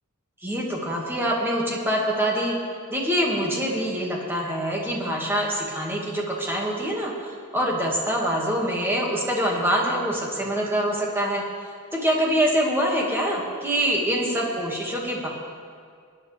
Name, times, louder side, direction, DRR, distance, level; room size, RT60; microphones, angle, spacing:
voice 1, 0.4-2.5 2.9-7.1 7.5-11.4 11.9-15.3, equal, 10° right, -2 dB, 1.9 m, -25 dB
22.0 x 9.7 x 3.4 m, 2.2 s
head